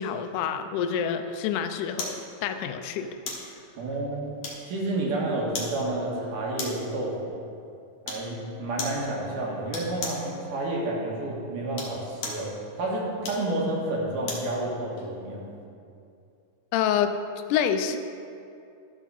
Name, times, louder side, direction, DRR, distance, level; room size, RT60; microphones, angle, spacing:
voice 1, 0.0-3.1 16.7-17.1 17.5-18.0, left 8 dB, 85° left, 8 dB, 1.8 m, -27 dB
sound 1, 2.0-2.2 3.3-3.5 4.4-4.9 5.5-5.8 6.6-6.9 8.0-8.3 8.8-9.0 9.7-10.3 11.6-12.5 13.2-14.5 15.0-15.1, left 3 dB, 55° left, 2.0 m, -35 dB
voice 2, 3.8-4.4 4.7-7.3 8.1-12.5 12.8-15.5, right 2 dB, 65° right, -3 dB, 2.9 m, -30 dB
13.0 x 6.0 x 4.1 m, 2.5 s
omnidirectional pair, 4.1 m